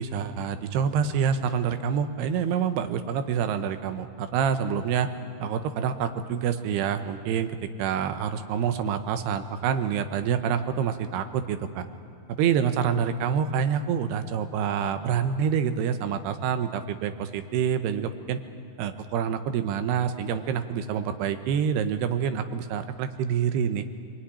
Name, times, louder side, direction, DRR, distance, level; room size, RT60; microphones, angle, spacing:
voice 1, 0.0-5.1 5.4-11.8 12.3-18.4 18.8-23.8, right 7 dB, 90° right, 9 dB, 3.1 m, -27 dB
23.5 x 20.5 x 9.9 m, 2.3 s
omnidirectional pair, 4.6 m